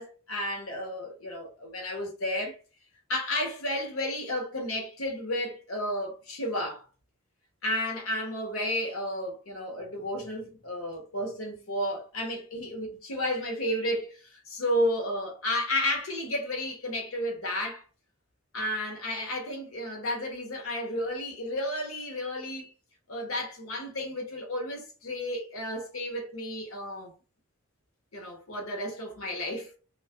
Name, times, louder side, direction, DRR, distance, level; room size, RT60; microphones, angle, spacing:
voice 1, 0.0-2.6 3.1-6.9 7.6-17.8 18.5-22.7 23.1-27.1 28.1-29.7, left 1 dB, 80° left, 0.9 m, -32 dB
2.4 x 2.4 x 2.2 m
head